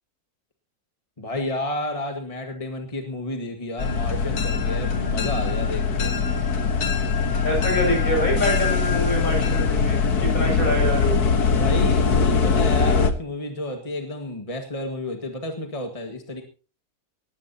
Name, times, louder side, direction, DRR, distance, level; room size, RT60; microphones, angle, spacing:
voice 1, 1.2-6.2 11.5-16.4, left 1 dB, 20° left, 4 dB, 1.9 m, -31 dB
sound 1, 3.8-13.1, left 5 dB, 75° left, 2.0 m, -22 dB
voice 2, 7.4-11.2, equal, 60° left, 1 dB, 8.5 m, -25 dB
19.5 x 15.5 x 2.9 m, 0.36 s
omnidirectional pair, 1.6 m